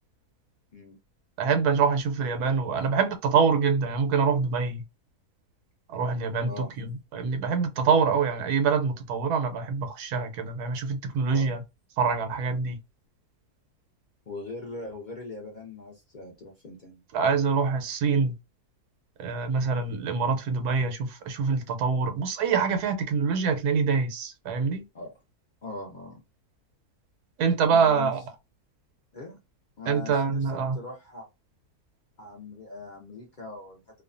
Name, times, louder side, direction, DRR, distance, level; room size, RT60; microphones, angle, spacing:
voice 1, 1.4-4.8 5.9-11.6 12.0-12.8 17.1-18.3 19.2-24.8 27.4-28.2 29.9-30.8, right 5 dB, 90° right, 1.2 m, -25 dB
voice 2, 6.4-6.7 11.2-11.6 14.3-17.0 24.9-25.1 25.6-26.2 27.7-28.2 29.1-29.4 29.8-31.3 32.2-34.0, left 2 dB, 70° left, 0.4 m, -41 dB
2.7 x 2.2 x 2.5 m
omnidirectional pair, 1.6 m